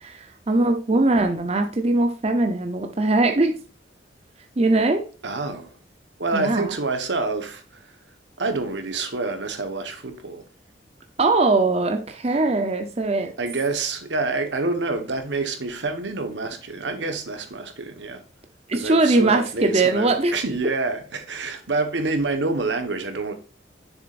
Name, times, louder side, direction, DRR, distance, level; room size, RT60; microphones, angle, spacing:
voice 1, 0.0-3.5 4.6-5.0 6.3-6.7 11.2-13.3 18.7-20.3, right 2 dB, 35° right, 0.7 m, -21 dB
voice 2, 5.2-5.8 6.2-7.9 8.4-10.4 13.4-18.2 18.7-23.3, right 3 dB, 75° right, 1.2 m, -27 dB
7.2 x 6.8 x 2.5 m
head